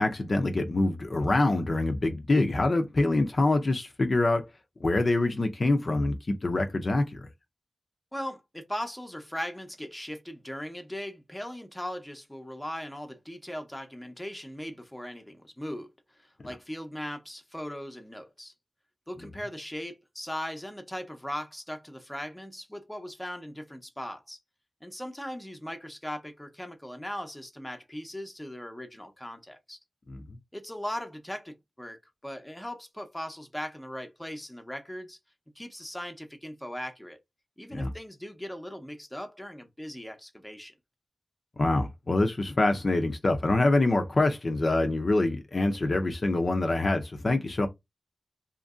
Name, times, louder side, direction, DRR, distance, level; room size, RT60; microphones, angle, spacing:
voice 1, 0.0-4.5 4.8-7.2 30.1-30.2 37.7-37.9 41.6-47.7, left 2 dB, 45° left, 0.5 m, -25 dB
voice 2, 8.1-15.9 16.2-18.5 19.1-24.4 24.8-29.8 30.5-35.2 35.6-37.2 37.6-40.7, equal, 10° left, 0.7 m, -39 dB
2.8 x 2.6 x 2.3 m
wide cardioid pair, 85°, 0 cm